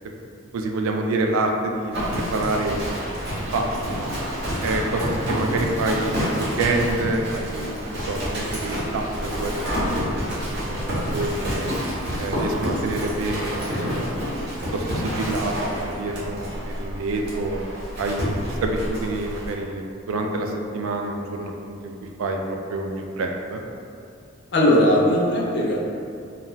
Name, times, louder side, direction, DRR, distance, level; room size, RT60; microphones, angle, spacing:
voice 1, 0.5-2.9 3.5-4.1 4.6-10.2 10.4-11.7 12.2-13.5 13.9-14.2 14.7-17.6 18.0-21.7 22.2-23.6, right 2 dB, 80° right, 3 dB, 0.3 m, -27 dB
Livestock farm animals working animals, 1.9-19.5, equal, 55° right, 0.9 m, -28 dB
voice 2, 24.5-25.8, left 1 dB, 55° left, -3 dB, 0.4 m, -18 dB
2.3 x 2.3 x 3.0 m, 2.5 s
head